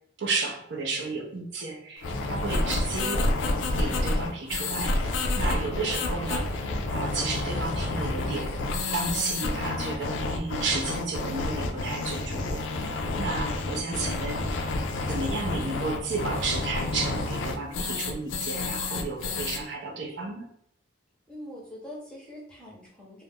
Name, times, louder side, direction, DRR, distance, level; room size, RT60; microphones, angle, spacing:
voice 1, 0.2-3.2 3.8-4.9 5.4-6.6 6.9-8.5 8.8-12.9 13.2-14.7 15.1-20.5, right 3 dB, 60° right, 1 dB, 0.5 m, -32 dB
sound 1, 2.0-19.6, left 2 dB, 70° left, 0.4 m, -29 dB
voice 2, 21.3-23.2, left 1 dB, 5° left, -4 dB, 0.7 m, -43 dB
2.4 x 2.0 x 3.5 m, 0.70 s
head